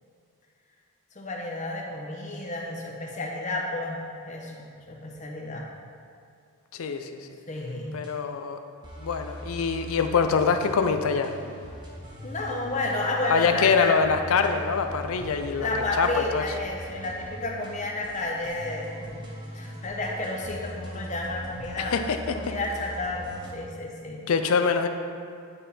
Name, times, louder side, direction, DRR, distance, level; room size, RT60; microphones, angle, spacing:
voice 1, 1.1-5.7 7.5-8.0 12.2-14.0 14.3-14.4 15.5-22.0 22.3-24.3, left 2 dB, 35° left, 0 dB, 0.7 m, -31 dB
voice 2, 6.7-7.2 7.9-8.6 9.0-11.3 13.3-15.7 16.0-16.5 21.9-22.4 24.3-24.9, left 5 dB, 70° left, 7 dB, 0.4 m, -24 dB
sound 1, 7.7-8.1 8.8-23.6, equal, 20° right, 0.8 m, -41 dB
9.8 x 3.5 x 4.2 m, 2.4 s
head